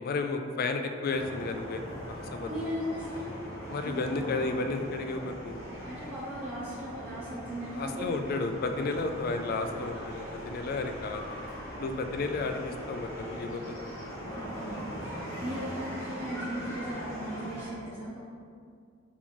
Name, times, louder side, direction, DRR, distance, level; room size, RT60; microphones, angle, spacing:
voice 1, 0.0-1.8 2.1-2.5 3.7-5.6 7.7-11.4 11.8-13.8, left 3 dB, 50° left, 6 dB, 0.3 m, -32 dB
sound 1, 1.1-17.7, equal, 80° left, 1.3 m, -40 dB
voice 2, 2.4-3.3 3.8-4.2 5.8-8.2 14.3-18.2, equal, 30° right, -12 dB, 0.8 m, -38 dB
4.1 x 2.9 x 3.7 m, 2.2 s
head